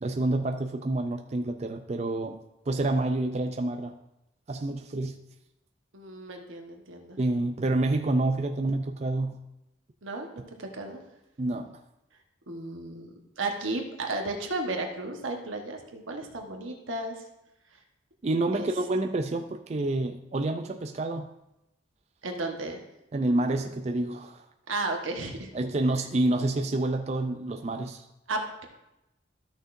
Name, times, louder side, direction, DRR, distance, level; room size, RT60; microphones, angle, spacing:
voice 1, 0.0-2.4 2.7-4.0 4.5-5.2 7.2-9.4 11.4-11.7 18.2-21.3 23.1-24.4 25.5-28.0, right 2 dB, 35° right, 5 dB, 0.4 m, -28 dB
voice 2, 5.9-7.2 10.0-11.0 12.5-17.2 18.5-18.7 22.2-22.8 24.7-25.5 28.3-28.6, right 2 dB, 90° right, 3 dB, 1.3 m, -34 dB
13.0 x 6.3 x 2.6 m, 0.90 s
head